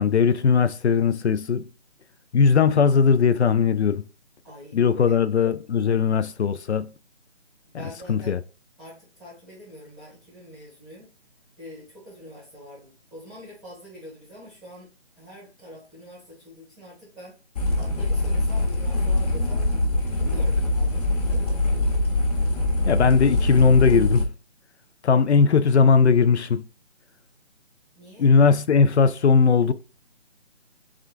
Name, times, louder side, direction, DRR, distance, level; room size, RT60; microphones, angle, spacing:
voice 1, 0.0-1.6 2.3-4.0 4.7-6.9 8.1-8.4 22.9-24.3 25.0-26.6 28.2-29.7, left 5 dB, 70° left, 0.5 m, -19 dB
voice 2, 4.4-5.2 7.7-8.4 8.8-11.1 11.6-14.9 15.2-17.4 17.7-19.7 20.1-21.6 27.9-28.3, equal, ahead, 0.7 m, -44 dB
sound 1, 17.6-24.2, left 2 dB, 35° left, 1.1 m, -23 dB
3.7 x 3.4 x 3.2 m
figure-of-eight pair, 155°, 34 cm